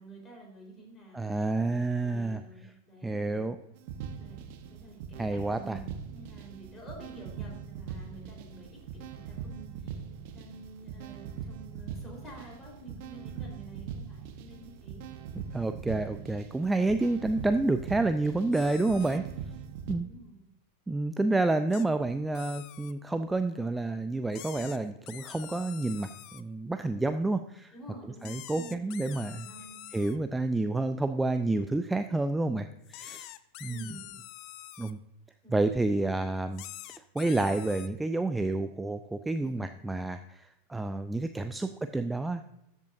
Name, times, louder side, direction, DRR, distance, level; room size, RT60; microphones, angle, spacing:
voice 1, 0.0-1.3 2.0-3.4 4.2-15.1 20.0-20.4 27.7-29.9 33.7-34.1 35.4-35.7 39.4-39.7, right 2 dB, 20° left, 0 dB, 4.1 m, -50 dB
voice 2, 1.1-2.4 3.0-3.6 5.2-5.8 15.5-19.3 19.9-20.1 20.9-27.7 28.2-29.5 29.9-33.3 33.6-34.0 34.8-35.0 35.5-36.6 37.1-42.5, right 2 dB, 10° right, 9 dB, 0.4 m, -29 dB
sound 1, 3.8-19.9, right 7 dB, 45° right, 0.9 m, -42 dB
sound 2, 18.5-19.2 21.7-21.9 22.3-22.9 24.3-26.4 28.2-30.2 32.8-34.9 36.5-37.9, left 15 dB, 40° left, 0.5 m, -46 dB
13.0 x 8.0 x 2.7 m, 0.87 s
figure-of-eight pair, 90°, 0 cm